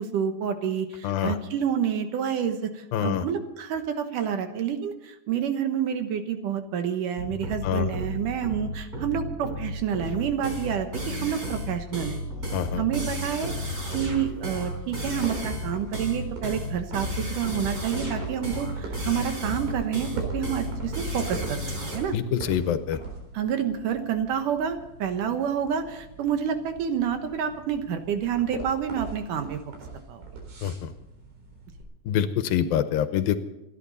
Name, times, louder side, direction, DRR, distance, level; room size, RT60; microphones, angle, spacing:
voice 1, 0.0-12.2 12.7-13.5 13.9-22.1 23.3-29.6 30.1-30.2, right 8 dB, 70° right, 7 dB, 2.6 m, -28 dB
voice 2, 1.0-1.4 2.9-3.2 7.6-7.9 12.5-12.8 22.1-23.0 30.6-30.9 32.1-33.4, left 9 dB, 80° left, 10 dB, 2.6 m, -25 dB
sound 1, 7.2-22.0, equal, 25° right, 4.3 m, -33 dB
sound 2, 14.2-31.8, right 3 dB, 85° right, 5.8 m, -42 dB
27.5 x 11.5 x 4.1 m, 0.92 s
omnidirectional pair, 4.2 m